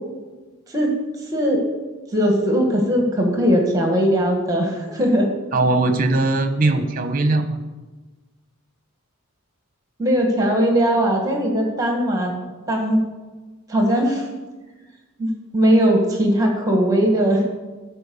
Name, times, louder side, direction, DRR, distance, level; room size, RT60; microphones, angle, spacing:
voice 1, 2.1-5.3 10.0-12.3 12.7-13.0 13.7-14.3 15.2-17.4, equal, 15° right, 1 dB, 1.6 m, -19 dB
voice 2, 5.5-7.6, right 2 dB, 40° right, 8 dB, 0.9 m, -20 dB
13.0 x 4.6 x 6.9 m, 1.3 s
head